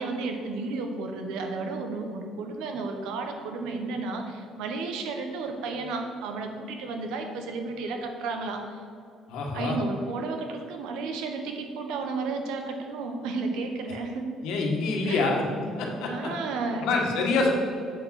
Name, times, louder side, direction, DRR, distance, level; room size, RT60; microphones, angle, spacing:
voice 1, 0.0-8.6 9.5-14.3 15.0-15.3 16.1-16.9, right 3 dB, 90° right, 4 dB, 1.2 m, -32 dB
voice 2, 9.3-9.8 14.4-15.4 15.8-16.1 16.8-17.5, left 3 dB, 80° left, 0 dB, 1.6 m, -26 dB
7.7 x 6.3 x 5.9 m, 2.4 s
cardioid pair, 160°, 0 cm